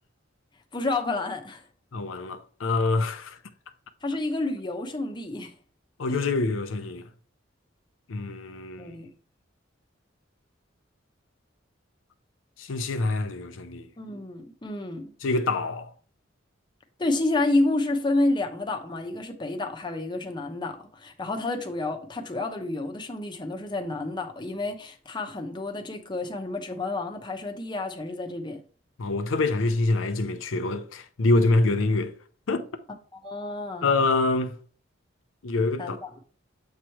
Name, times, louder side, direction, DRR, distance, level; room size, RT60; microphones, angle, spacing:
voice 1, 0.7-1.6 4.0-5.5 6.1-6.2 8.8-9.1 14.0-15.1 17.0-28.6 33.1-33.9 35.8-36.1, left 2 dB, 25° left, 0.8 m, -29 dB
voice 2, 1.9-3.4 6.0-7.0 8.1-9.0 12.6-13.9 15.2-15.9 29.0-32.1 32.5-32.6 33.8-34.5 35.4-36.0, left 2 dB, 80° left, 0.6 m, -25 dB
7.3 x 3.1 x 4.6 m
head